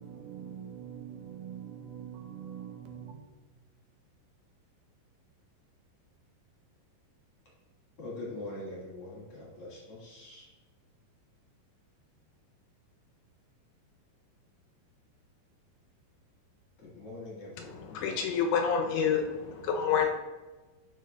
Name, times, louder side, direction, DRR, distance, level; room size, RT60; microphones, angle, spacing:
voice 1, 0.0-3.1, right 8 dB, 80° right, 2.3 m, -43 dB
voice 2, 8.0-10.5 16.8-18.1, left 2 dB, 50° left, 1.8 m, -43 dB
voice 3, 17.9-20.1, left 6 dB, 80° left, 2.4 m, -28 dB
11.0 x 5.1 x 2.3 m
omnidirectional pair, 5.0 m